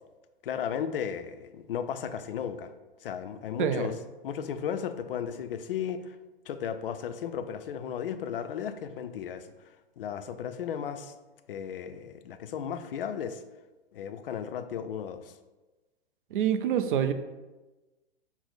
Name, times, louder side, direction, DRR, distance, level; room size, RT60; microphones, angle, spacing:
voice 1, 0.4-2.7 3.0-4.0 4.2-6.2 6.5-9.5 10.0-11.1 11.5-13.4 13.9-15.3, left 8 dB, 60° left, 9 dB, 0.4 m, -35 dB
voice 2, 16.3-17.1, right 9 dB, 55° right, 10 dB, 0.4 m, -26 dB
5.9 x 2.0 x 3.9 m, 1.1 s
figure-of-eight pair, 110°, 31 cm